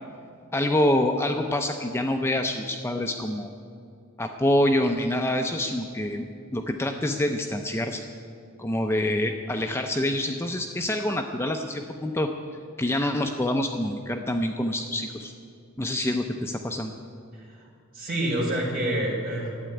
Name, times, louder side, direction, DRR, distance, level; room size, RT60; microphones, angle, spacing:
voice 1, 0.5-3.5 4.2-6.3 6.5-8.0 8.6-12.3 12.8-15.3 15.8-16.9, left 1 dB, 10° left, 4 dB, 0.5 m, -26 dB
voice 2, 17.3-17.7 17.9-19.5, right 1 dB, 40° right, -4 dB, 4.2 m, -28 dB
12.5 x 8.9 x 9.6 m, 2.4 s
head